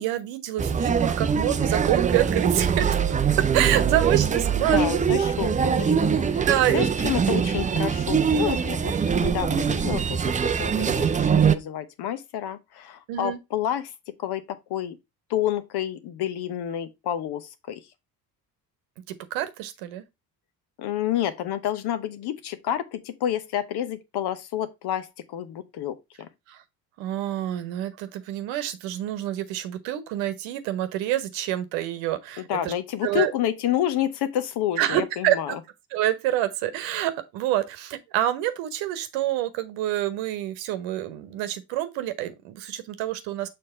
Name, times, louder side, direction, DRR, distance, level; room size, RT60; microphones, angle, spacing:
voice 1, 0.0-3.0 3.5-5.0 6.4-6.8 13.1-13.4 19.3-20.0 26.5-26.6 27.0-32.7 33.0-33.3 34.8-35.6 35.9-43.5, right 13 dB, 65° right, 1.1 m, -27 dB
sound 1, 0.6-11.5, right 6 dB, 15° right, 0.5 m, -23 dB
voice 2, 4.7-6.5 6.7-8.9 9.2-13.9 14.2-15.0 15.3-17.8 20.8-26.3 32.4-35.6, left 11 dB, 50° left, 1.0 m, -29 dB
6.8 x 3.4 x 4.3 m
hypercardioid pair, 55°, 49 cm